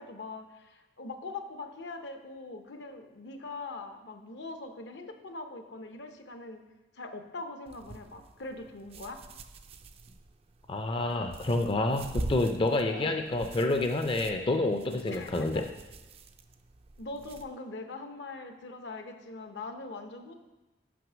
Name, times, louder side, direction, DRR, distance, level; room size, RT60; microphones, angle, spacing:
voice 1, 0.0-6.6 6.9-9.2 12.8-13.2 15.1-15.7 17.0-20.3, left 3 dB, 70° left, 6 dB, 0.8 m, -42 dB
sound 1, 7.7-17.5, right 2 dB, 35° right, 0.4 m, -44 dB
voice 2, 10.7-15.6, left 2 dB, 30° left, 5 dB, 0.4 m, -28 dB
6.0 x 5.6 x 6.1 m, 1.1 s
head